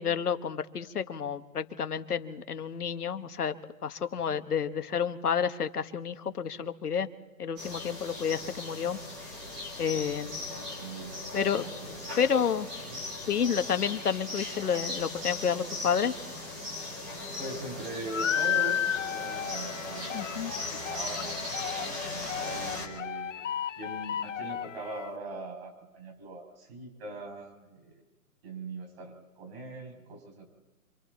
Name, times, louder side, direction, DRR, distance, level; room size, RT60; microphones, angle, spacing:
voice 1, 0.0-3.6 3.8-7.1 7.4-9.0 9.8-10.4 11.3-11.6 12.2-12.7 13.3-16.1 20.1-20.5, left 7 dB, 80° left, 9 dB, 1.5 m, -30 dB
sound 1, 7.6-22.9, left 2 dB, 5° right, 0.7 m, -38 dB
voice 2, 10.5-12.2 17.4-23.4 23.8-28.0 28.4-30.4, right 2 dB, 40° right, 3 dB, 6.4 m, -42 dB
sound 2, 18.1-25.1, left 9 dB, 55° left, 0.6 m, -33 dB
27.0 x 26.0 x 4.2 m, 1.2 s
hypercardioid pair, 165°, 45 cm